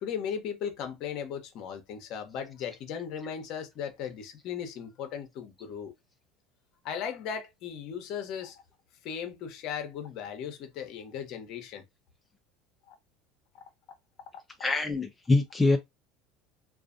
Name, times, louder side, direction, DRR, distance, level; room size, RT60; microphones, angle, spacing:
voice 1, 0.0-5.9 6.8-8.6 9.0-11.8 12.9-13.0, left 8 dB, 60° left, 0.8 m, -37 dB
voice 2, 14.6-15.8, left 3 dB, 15° left, 0.4 m, -24 dB
2.4 x 2.4 x 2.5 m
supercardioid pair, 95°, 0 cm